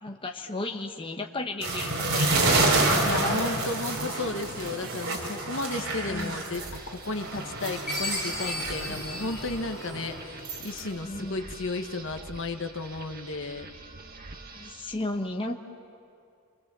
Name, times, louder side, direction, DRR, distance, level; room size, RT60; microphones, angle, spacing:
voice 1, 0.0-3.4 6.0-6.4 8.9-9.3 11.0-11.4 14.5-15.7, left 2 dB, 25° left, 3 dB, 1.1 m, -34 dB
sound 1, 1.6-6.8 7.1-10.8, right 2 dB, 65° right, 4.8 m, -28 dB
sound 2, 1.7-14.9, right 2 dB, 40° right, 1.7 m, -44 dB
voice 2, 3.0-13.7, left 2 dB, 55° left, 6 dB, 1.4 m, -34 dB
Chime, 7.9-10.4, left 2 dB, 5° right, 5.0 m, -35 dB
29.5 x 24.5 x 7.6 m, 2.5 s
head